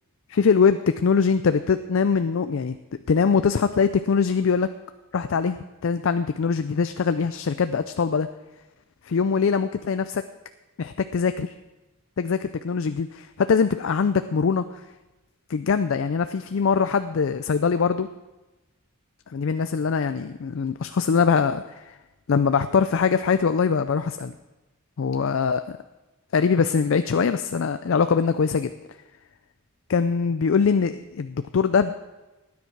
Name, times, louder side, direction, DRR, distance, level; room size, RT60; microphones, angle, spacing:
voice 1, 0.3-2.8 3.1-4.7 5.1-5.6 5.8-8.3 9.0-10.2 10.8-11.5 12.2-14.6 15.5-18.1 19.3-22.0 22.3-24.3 25.0-25.8 26.3-28.7 29.9-32.0, left 5 dB, 65° left, 11 dB, 0.4 m, -22 dB
18.5 x 9.6 x 4.6 m, 1.1 s
head